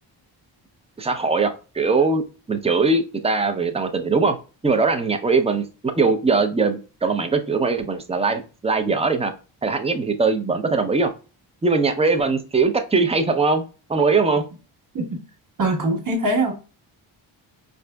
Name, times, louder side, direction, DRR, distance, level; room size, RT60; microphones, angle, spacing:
voice 1, 1.0-4.4 4.6-9.3 9.6-11.1 11.6-14.5, right 4 dB, 15° right, 0.5 m, -21 dB
voice 2, 15.6-16.5, right 2 dB, 40° right, 1.3 m, -22 dB
4.8 x 2.6 x 2.2 m
cardioid pair, 70°, 48 cm